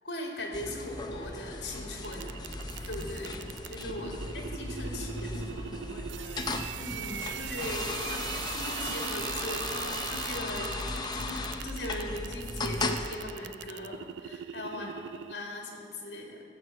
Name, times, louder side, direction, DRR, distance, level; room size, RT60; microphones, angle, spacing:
voice 1, 0.0-2.4 2.9-3.4 3.7-5.5 6.8-14.9 15.2-16.4, left 1 dB, 60° left, 0 dB, 2.4 m, -39 dB
sound 1, 0.5-13.1, left 2 dB, 25° left, 0.6 m, -36 dB
sound 2, 1.7-3.6 4.2-4.7 6.7-7.1 7.6-8.2 9.0-9.2 9.7-9.8 11.7-12.1 12.4-13.0, right 4 dB, 45° right, 2.1 m, -55 dB
sound 3, 2.0-15.3, right 10 dB, 80° right, 0.4 m, -41 dB
voice 2, 4.0-4.4 4.9-7.4 14.8-15.0, left 2 dB, 90° left, -1 dB, 1.0 m, -48 dB
15.5 x 7.8 x 6.7 m, 2.3 s
head